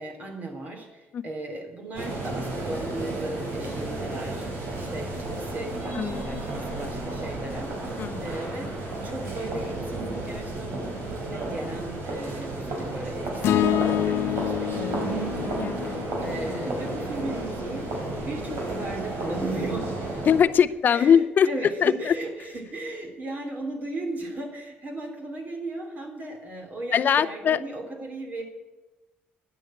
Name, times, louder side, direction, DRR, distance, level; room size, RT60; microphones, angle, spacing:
voice 1, 0.0-8.7 9.0-17.9 18.2-20.0 20.9-28.4, right 2 dB, 40° right, 3 dB, 3.1 m, -36 dB
sound 1, 1.9-20.4, right 2 dB, 75° right, 5.4 m, -32 dB
sound 2, 13.4-17.7, left 13 dB, 85° left, 1.1 m, -28 dB
voice 2, 20.3-21.5 21.8-22.1 26.9-27.6, left 8 dB, 45° left, 14 dB, 0.6 m, -21 dB
12.0 x 10.0 x 8.7 m, 1.1 s
cardioid pair, 125°, 4 cm